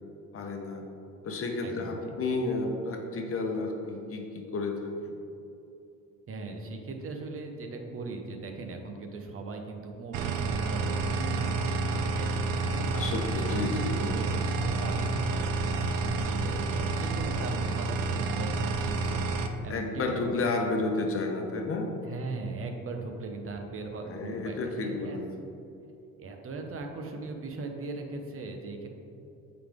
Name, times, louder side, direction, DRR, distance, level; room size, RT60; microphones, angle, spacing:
voice 1, 0.3-0.8 1.2-4.7 5.0-5.2 12.9-14.0 19.7-21.9 24.1-25.2, left 3 dB, 40° left, 2 dB, 1.0 m, -31 dB
voice 2, 1.6-1.9 6.3-12.9 13.3-13.7 13.9-20.3 22.0-25.2 26.2-28.9, right 3 dB, 40° right, 3 dB, 0.9 m, -39 dB
sound 1, 10.1-19.5, right 3 dB, 75° right, 0.6 m, -29 dB
8.3 x 4.0 x 3.6 m, 2.8 s
cardioid pair, 105°, 34 cm